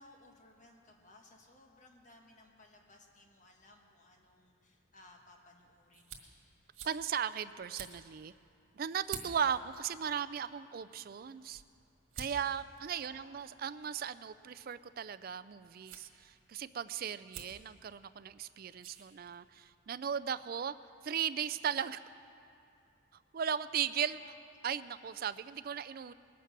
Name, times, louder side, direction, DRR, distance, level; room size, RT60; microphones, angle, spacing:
voice 1, 0.0-6.3 13.1-13.5 24.2-24.6, left 2 dB, 40° left, 2 dB, 1.4 m, -60 dB
sound 1, 5.0-19.8, right 6 dB, 85° right, 1.7 m, -53 dB
voice 2, 6.8-8.3 8.7-11.6 12.2-20.7 21.0-22.0 23.3-24.2 24.6-26.1, right 8 dB, 45° right, 14 dB, 0.3 m, -37 dB
20.5 x 8.4 x 6.0 m, 2.7 s
head